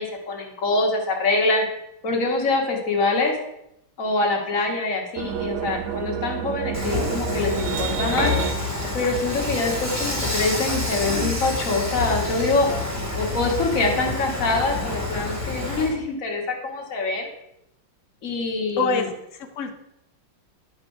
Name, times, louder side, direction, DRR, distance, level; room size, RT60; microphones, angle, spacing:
voice 1, 0.0-1.6 2.0-3.4 4.0-8.3 8.9-17.3 18.2-19.1, left 3 dB, 45° left, 1 dB, 1.6 m, -24 dB
sound 1, 5.2-8.5, right 9 dB, 75° right, 0.9 m, -29 dB
Dishes pots and pans / Frying (food), 6.7-15.9, left 2 dB, 10° right, 1.3 m, -27 dB
voice 2, 18.8-19.7, left 4 dB, 80° left, 5 dB, 0.6 m, -26 dB
10.0 x 5.0 x 4.6 m, 0.82 s
omnidirectional pair, 2.3 m